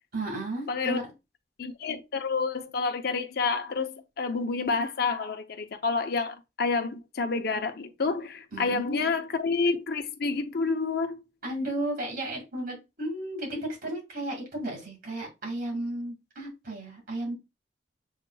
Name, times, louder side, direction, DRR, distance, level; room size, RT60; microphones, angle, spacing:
voice 1, 0.1-1.1 8.5-9.0 11.4-17.4, right 1 dB, 55° right, 2.2 m, -34 dB
voice 2, 0.7-1.0 1.6-11.2 13.5-13.6, left 4 dB, 60° left, 0.7 m, -29 dB
7.2 x 2.9 x 2.3 m
head